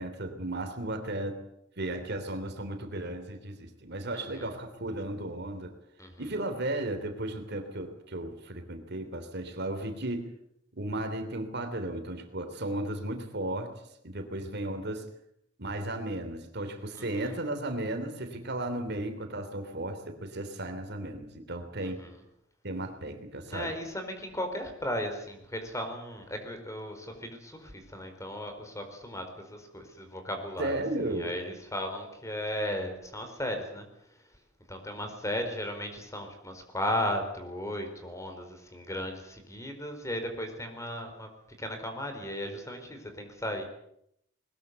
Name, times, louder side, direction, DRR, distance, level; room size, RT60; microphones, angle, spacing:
voice 1, 0.0-1.4 1.8-5.8 6.2-10.3 10.8-15.1 15.6-22.0 22.6-23.7 30.6-31.4, right 1 dB, 60° right, 7 dB, 3.2 m, -35 dB
voice 2, 4.1-4.5 6.0-6.2 16.9-17.1 21.8-22.1 23.5-30.8 31.1-33.9 34.7-41.3 41.6-43.6, left 1 dB, 15° left, 6 dB, 4.4 m, -36 dB
21.0 x 20.5 x 8.2 m, 0.74 s
head